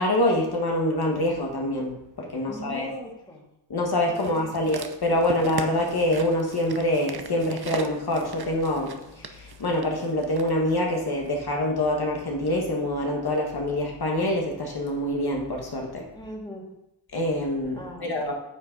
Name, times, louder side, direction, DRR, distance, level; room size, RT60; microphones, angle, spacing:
voice 1, 0.0-2.9 3.7-16.1 17.1-18.3, left 1 dB, 60° left, 0 dB, 1.6 m, -25 dB
voice 2, 2.4-3.5 4.1-4.6 16.1-16.7 17.7-18.1, equal, 10° left, -2 dB, 2.1 m, -40 dB
sound 1, 4.2-10.5 11.3-11.4, right 6 dB, 60° right, 0.9 m, -38 dB
9.3 x 6.0 x 5.3 m, 0.88 s
wide cardioid pair, 110°, 42 cm